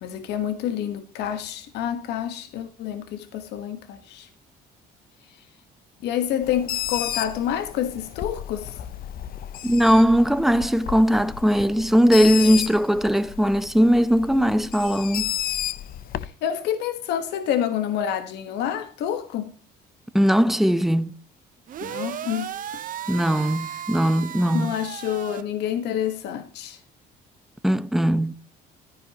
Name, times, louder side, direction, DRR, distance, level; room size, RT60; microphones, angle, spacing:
voice 1, 0.0-4.3 6.0-8.8 12.4-12.6 16.2-19.5 21.8-22.8 23.4-23.8 24.5-26.8, left 10 dB, 85° left, 1.4 m, -28 dB
Bird, 6.4-16.3, left 11 dB, 60° left, 0.8 m, -33 dB
voice 2, 9.6-15.3 20.1-21.1 23.1-24.7 27.6-28.3, equal, ahead, 0.8 m, -19 dB
sound 1, 21.7-25.4, right 10 dB, 55° right, 1.0 m, -35 dB
13.5 x 10.5 x 2.9 m
cardioid pair, 110°, 17 cm